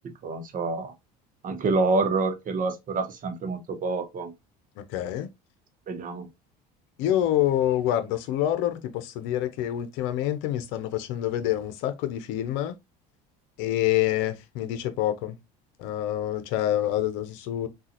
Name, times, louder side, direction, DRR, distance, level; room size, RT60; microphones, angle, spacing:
voice 1, 0.2-0.9 1.4-4.3 5.9-6.3, right 3 dB, 40° right, 0.9 m, -27 dB
voice 2, 4.8-5.3 7.0-12.7 13.6-15.4 15.8-17.7, left 12 dB, 70° left, 0.7 m, -27 dB
3.7 x 2.4 x 2.8 m
supercardioid pair, 85°, 21 cm